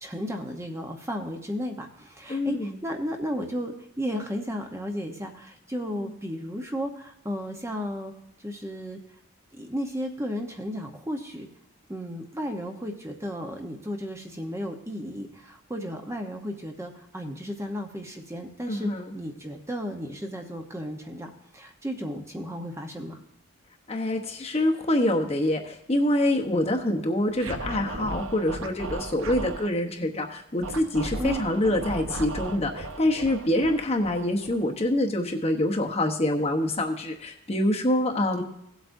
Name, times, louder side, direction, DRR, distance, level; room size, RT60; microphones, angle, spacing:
voice 1, 0.0-8.1 8.4-9.0 9.5-11.5 11.9-23.2 31.2-31.4, equal, 15° right, 3 dB, 0.8 m, -34 dB
voice 2, 2.3-2.8 6.0-6.1 18.7-19.1 23.9-38.4, left 1 dB, 30° left, 3 dB, 0.9 m, -26 dB
Scratching (performance technique), 27.3-29.7 30.6-34.9, right 2 dB, 70° right, 1.0 m, -36 dB
17.0 x 8.1 x 2.6 m, 0.81 s
head